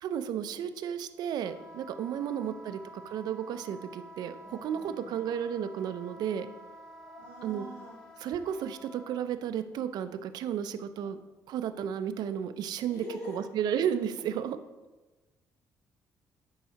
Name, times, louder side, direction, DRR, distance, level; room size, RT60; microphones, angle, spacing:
voice 1, 0.0-2.8 3.0-4.4 4.6-6.5 7.4-7.7 8.2-11.2 11.5-14.6, right 9 dB, 70° right, 11 dB, 0.4 m, -33 dB
Wind instrument woodwind instrument, 1.4-9.2, equal, 10° left, 0.9 m, -50 dB
voice 2, 2.0-2.8 3.5-3.6 4.4-5.2 7.0-8.0 12.9-13.4, equal, 90° left, -6 dB, 1.9 m, -45 dB
7.0 x 4.7 x 2.8 m, 1.2 s
cardioid pair, 80°, 7 cm